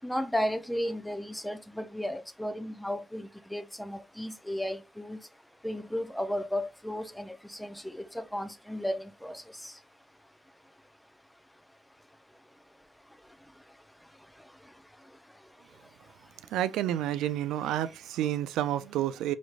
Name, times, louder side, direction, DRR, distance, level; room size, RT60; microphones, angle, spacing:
voice 1, 0.0-5.2 5.6-9.7, equal, 5° left, 0.5 m, -34 dB
voice 2, 16.5-19.3, right 12 dB, 90° right, 0.3 m, -29 dB
4.9 x 3.1 x 2.4 m
cardioid pair, 90°, 0 cm